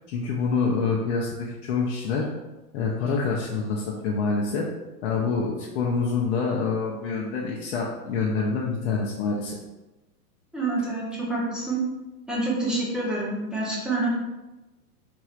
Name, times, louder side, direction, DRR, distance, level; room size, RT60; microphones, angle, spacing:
voice 1, 0.1-2.3 2.7-4.7 5.0-9.6, left 4 dB, 50° left, -2 dB, 0.6 m, -26 dB
voice 2, 10.5-11.8 12.3-14.1, right 2 dB, ahead, -6 dB, 0.5 m, -27 dB
4.5 x 3.1 x 2.4 m, 1.1 s
hypercardioid pair, 125°, 46 cm